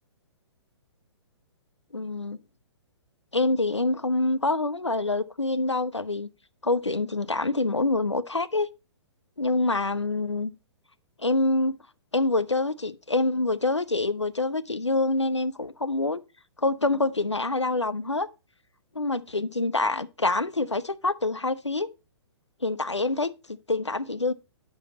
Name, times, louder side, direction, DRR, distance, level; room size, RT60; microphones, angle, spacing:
voice 1, 1.9-2.4 3.3-6.3 6.6-8.7 9.4-10.5 11.2-11.8 12.1-16.2 16.6-18.3 18.9-21.9 22.6-24.3, left 2 dB, 85° left, 0.7 m, -26 dB
10.5 x 5.7 x 4.0 m
figure-of-eight pair, 120°, 15 cm